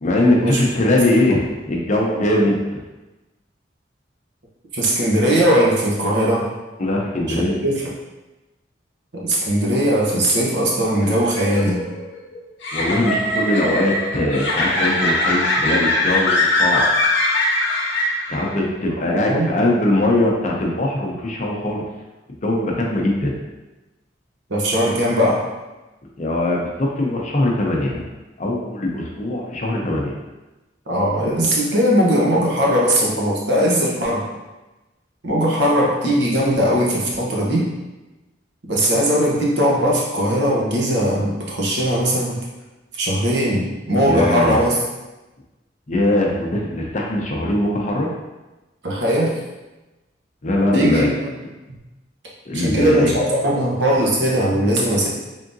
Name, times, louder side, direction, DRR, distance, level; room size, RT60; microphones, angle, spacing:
voice 1, 0.0-2.8 6.8-7.6 12.7-16.8 18.3-21.8 22.3-23.3 26.2-28.0 28.4-30.1 44.0-44.6 45.9-48.1 50.4-51.1 52.5-53.1, left 1 dB, 40° left, -1 dB, 0.6 m, -21 dB
voice 2, 4.7-6.5 7.6-7.7 9.1-11.8 19.3-19.5 24.5-25.4 30.9-34.2 35.2-37.7 38.7-42.4 42.9-44.8 48.8-49.4 50.7-51.1 52.5-55.1, equal, 70° right, -3 dB, 0.9 m, -19 dB
sound 1, 11.0-18.6, left 1 dB, 75° left, 0.8 m, -21 dB
3.7 x 3.5 x 2.6 m, 1.1 s
head